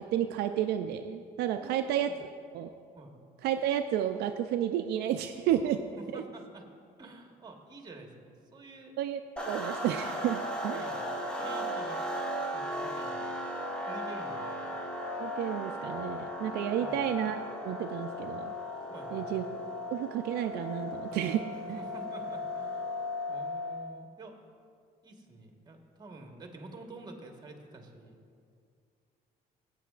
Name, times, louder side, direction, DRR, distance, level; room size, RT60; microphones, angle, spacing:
voice 1, 0.0-2.1 2.5-2.7 3.4-5.8 6.1-6.2 9.0-9.2 9.5-10.9 15.2-18.5 19.1-19.4 19.9-21.4 21.7-21.8, right 11 dB, 75° right, 7 dB, 0.4 m, -31 dB
voice 2, 1.6-2.2 2.9-3.1 6.0-6.7 7.0-9.0 10.7-11.1 11.4-12.0 12.5-13.3 13.9-14.7 16.8-17.1 18.9-19.3 21.8-22.9 23.3-24.4 25.0-28.2, right 2 dB, 25° right, 2 dB, 1.3 m, -48 dB
sound 1, 9.4-23.9, left 1 dB, 5° left, 1.1 m, -36 dB
15.0 x 8.3 x 2.4 m, 2.3 s
cardioid pair, 110°, 17 cm